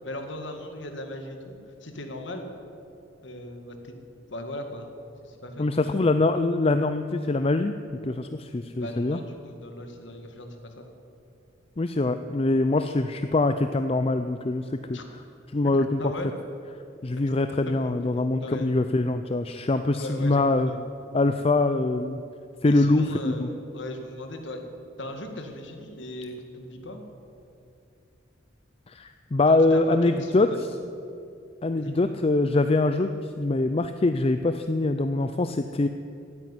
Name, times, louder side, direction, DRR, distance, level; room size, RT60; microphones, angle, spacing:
voice 1, 0.0-2.5 3.2-4.0 4.3-4.9 5.2-6.0 8.8-10.9 14.9-15.0 15.8-16.3 17.1-17.2 17.6-18.0 18.4-18.8 19.9-20.4 20.7-20.8 22.6-24.7 25.0-27.0 29.4-30.4 31.8-32.2, left 1 dB, 65° left, 5 dB, 2.0 m, -38 dB
voice 2, 5.6-7.7 8.0-9.2 11.8-15.0 15.5-16.1 17.0-20.7 21.1-22.2 22.6-23.5 28.9-30.5 31.6-35.9, left 2 dB, 30° left, 9 dB, 0.5 m, -23 dB
15.5 x 9.1 x 9.9 m, 2.5 s
head